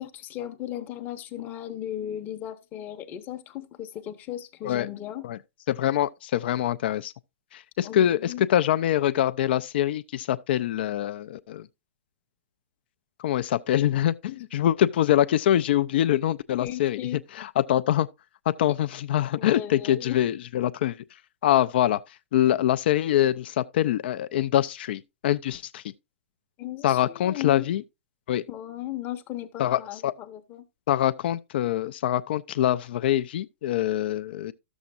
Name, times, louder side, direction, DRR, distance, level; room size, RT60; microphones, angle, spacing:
voice 1, 0.0-5.2 7.8-8.4 16.6-17.2 19.4-20.2 26.6-27.7 28.5-30.6, left 12 dB, 30° left, 0.8 m, -36 dB
voice 2, 5.7-7.1 7.5-11.7 13.2-17.0 17.4-18.1 18.5-21.0 21.4-22.0 22.3-25.8 26.8-27.8 28.3-28.4 29.6-30.1 30.9-34.5, left 12 dB, 50° left, 0.4 m, -24 dB
12.5 x 7.1 x 2.5 m
figure-of-eight pair, 115°, 7 cm